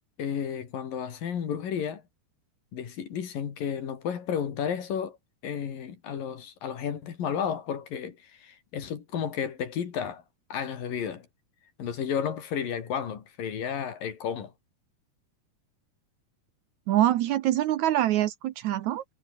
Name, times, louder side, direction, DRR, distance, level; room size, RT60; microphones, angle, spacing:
voice 1, 0.2-2.0 2.7-5.2 5.4-10.2 10.5-11.3 11.8-14.5, left 8 dB, 65° left, 4.3 m, -32 dB
voice 2, 16.9-19.0, right 13 dB, 75° right, 1.7 m, -24 dB
omnidirectional pair, 4.4 m